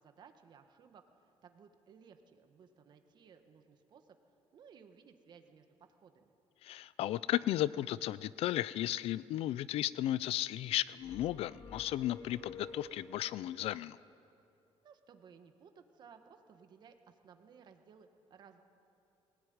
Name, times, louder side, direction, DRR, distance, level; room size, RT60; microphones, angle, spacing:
voice 1, 0.0-4.2 4.5-6.3 14.8-18.6, right 6 dB, 45° right, 7 dB, 1.5 m, -59 dB
voice 2, 6.6-14.0, left 13 dB, 75° left, 19 dB, 0.5 m, -34 dB
sound 1, 11.0-13.4, left 4 dB, 35° left, 2.9 m, -50 dB
20.0 x 18.0 x 9.5 m, 2.8 s
cardioid pair, 170°, 10 cm